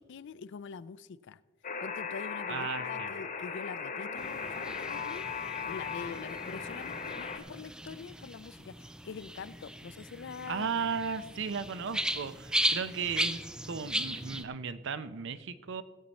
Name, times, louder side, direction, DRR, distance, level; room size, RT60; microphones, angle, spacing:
voice 1, 0.1-1.4 1.8-5.3 5.7-10.7, left 5 dB, 60° left, 16 dB, 0.4 m, -44 dB
Alarm, 1.6-7.4, left 6 dB, 40° left, 1.1 m, -37 dB
voice 2, 2.5-3.1 10.5-13.4 13.7-15.8, right 6 dB, 60° right, 14 dB, 0.6 m, -35 dB
sound 1, 3.7-7.5 7.8-7.9, left 1 dB, 80° left, 1.7 m, -57 dB
sound 2, 4.2-14.4, right 1 dB, 5° right, 0.4 m, -37 dB
16.5 x 8.3 x 4.1 m, 1.4 s
head